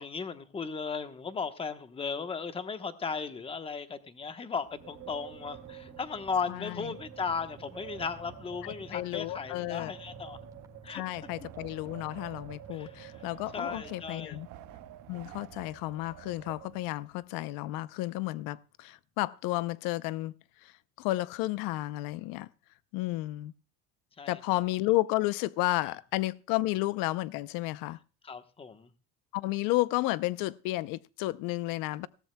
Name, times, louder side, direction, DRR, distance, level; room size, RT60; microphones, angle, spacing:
voice 1, 0.0-10.4 10.8-11.3 12.7-13.2 13.5-14.4 24.2-24.6 28.2-28.9, left 5 dB, 15° left, 1.0 m, -36 dB
Wind, 4.6-17.2, right 11 dB, 65° right, 1.3 m, -49 dB
sound 1, 4.8-17.1 17.4-17.5 17.8-18.1, right 1 dB, 10° right, 2.2 m, -55 dB
voice 2, 6.5-6.8 8.6-9.9 10.9-14.5 15.1-20.3 20.6-20.7 21.0-22.5 22.9-23.5 24.3-28.0 29.3-32.1, left 18 dB, 85° left, 0.6 m, -32 dB
18.5 x 17.5 x 2.2 m
cardioid pair, 160°, 33 cm